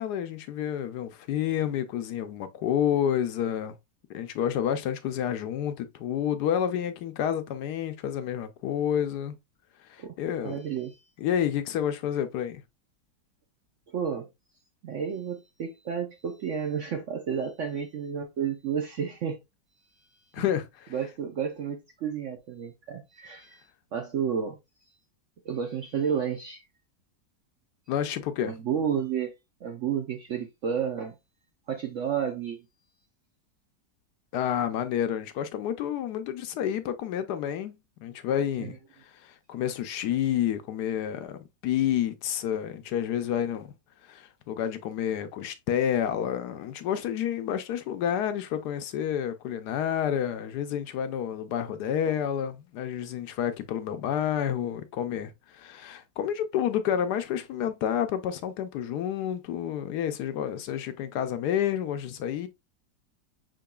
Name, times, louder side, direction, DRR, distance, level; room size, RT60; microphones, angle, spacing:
voice 1, 0.0-3.8 4.1-9.3 9.9-10.6 11.2-12.6 20.3-20.9 27.9-28.5 34.3-43.7 44.0-62.5, left 9 dB, 75° left, 1.1 m, -29 dB
voice 2, 10.4-11.0 13.9-14.3 14.8-19.4 20.4-20.5 20.9-23.6 23.9-24.6 25.4-26.6 28.5-29.3 29.6-31.2 31.7-32.6 38.6-38.7, right 7 dB, 65° right, 0.8 m, -31 dB
5.8 x 3.8 x 2.2 m
omnidirectional pair, 1.9 m